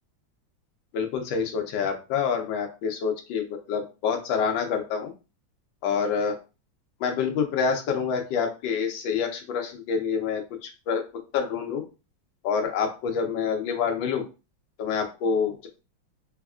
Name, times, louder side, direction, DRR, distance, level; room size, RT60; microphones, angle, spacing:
voice 1, 0.9-5.1 5.8-6.4 7.0-11.0 11.3-11.8 12.4-14.2 14.8-15.7, left 6 dB, 70° left, 4 dB, 1.4 m, -27 dB
4.2 x 2.2 x 2.3 m, 0.30 s
omnidirectional pair, 2.2 m